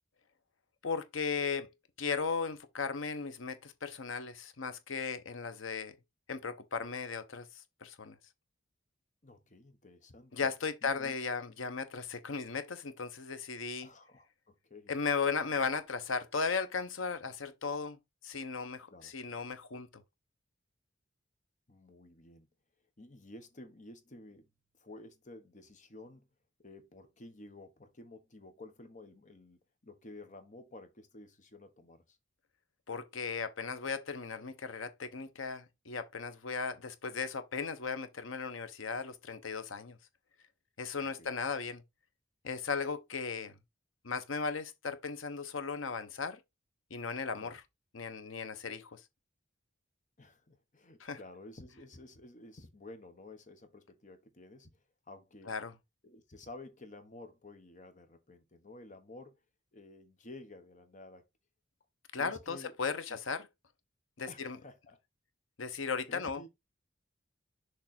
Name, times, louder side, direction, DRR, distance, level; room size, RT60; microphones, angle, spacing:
voice 1, 0.8-1.7 2.0-5.9 6.3-8.1 10.3-13.9 14.9-18.0 18.2-20.0 32.9-40.0 40.8-41.8 42.4-43.5 44.0-46.4 46.9-47.6 47.9-49.0 51.0-51.2 55.5-55.7 62.1-63.5 64.2-64.6 65.6-66.4, left 5 dB, 80° left, 0.9 m, -36 dB
voice 2, 9.2-10.5 10.8-11.2 13.8-14.9 18.9-19.1 21.7-22.5 23.0-24.5 24.8-26.3 26.6-32.2 41.0-41.3 47.4-47.6 50.2-54.7 55.1-55.5 56.0-59.4 59.7-61.2 62.1-62.7 63.1-63.2 64.3-65.0 66.1-66.5, left 2 dB, 40° left, 1.2 m, -52 dB
6.6 x 3.4 x 4.3 m
head